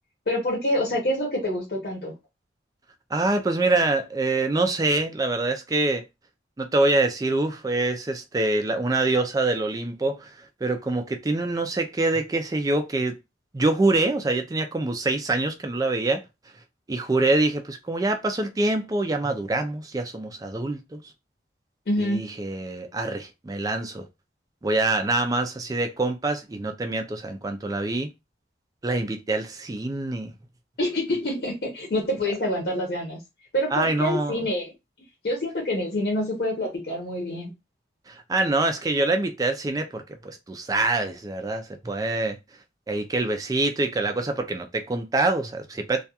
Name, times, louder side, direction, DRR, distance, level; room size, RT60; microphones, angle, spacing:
voice 1, 0.3-2.1 21.9-22.3 30.8-33.2 33.5-34.7 35.2-37.5, left 1 dB, 55° left, 0.8 m, -26 dB
voice 2, 3.1-6.0 6.6-13.2 13.5-16.2 16.9-21.0 22.0-24.1 24.6-28.1 28.8-30.3 33.7-34.4 38.1-42.4 42.9-46.0, right 2 dB, 20° right, 0.3 m, -25 dB
2.3 x 2.2 x 2.7 m
head